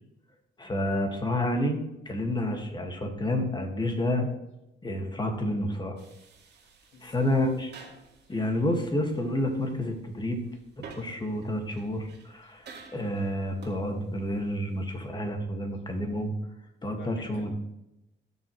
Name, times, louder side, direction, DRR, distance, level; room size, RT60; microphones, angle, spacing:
voice 1, 0.6-4.3 4.8-6.0 7.0-7.7 8.3-10.4 10.8-12.7 12.9-16.3 16.8-17.5, left 1 dB, 20° left, 3 dB, 2.0 m, -29 dB
sound 1, 6.0-15.1, right 5 dB, 60° right, 2.3 m, -52 dB
voice 2, 6.9-7.3 8.2-8.3 12.4-12.5 17.0-17.5, left 4 dB, 70° left, 3 dB, 2.1 m, -49 dB
15.0 x 6.5 x 3.3 m, 0.88 s
cardioid pair, 90°, 20 cm